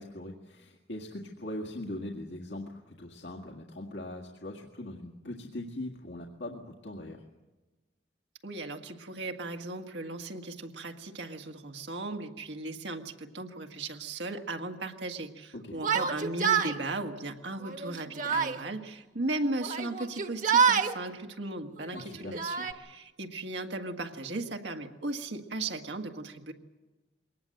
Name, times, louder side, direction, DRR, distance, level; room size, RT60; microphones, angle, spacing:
voice 1, 0.0-7.2 15.5-15.8 21.9-22.4, left 1 dB, 90° left, 0 dB, 1.9 m, -41 dB
voice 2, 8.4-26.5, right 2 dB, 90° right, 4 dB, 1.8 m, -37 dB
Yell, 15.7-16.8 17.6-18.6 19.6-20.9 21.8-22.7, right 6 dB, 50° right, 1.3 m, -27 dB
23.0 x 19.0 x 7.8 m, 1.2 s
head